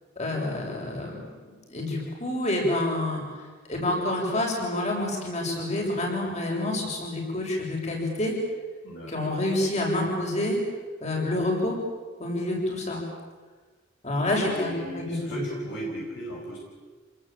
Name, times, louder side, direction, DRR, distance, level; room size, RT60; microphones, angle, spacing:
voice 1, 0.2-1.2 1.5-3.2 3.7-8.3 9.1-10.6 11.0-11.8 12.2-13.0 14.0-15.4, left 1 dB, 35° left, -1 dB, 7.6 m, -28 dB
voice 2, 8.8-9.3 14.2-16.6, equal, 65° left, -2 dB, 5.6 m, -36 dB
28.5 x 20.0 x 9.0 m, 1.3 s
head